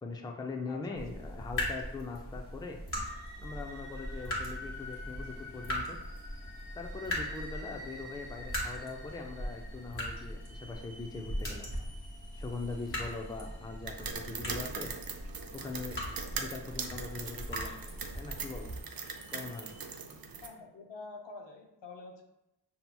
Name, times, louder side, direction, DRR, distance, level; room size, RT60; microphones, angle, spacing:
voice 1, 0.0-2.8 3.4-6.0 6.8-11.7 12.3-14.9 15.5-16.0 16.3-17.8 18.2-18.7 19.3-19.7, left 3 dB, 10° left, 2 dB, 0.4 m, -41 dB
voice 2, 0.7-1.0 20.4-22.2, left 3 dB, 80° left, 2 dB, 0.7 m, -47 dB
sound 1, 0.9-18.8, equal, 30° left, 1.2 m, -40 dB
sound 2, 3.0-19.8, left 1 dB, 30° right, 1.2 m, -52 dB
sound 3, 13.9-20.5, right 5 dB, 55° right, 0.5 m, -41 dB
5.5 x 2.8 x 2.2 m, 0.87 s
wide cardioid pair, 95°, 42 cm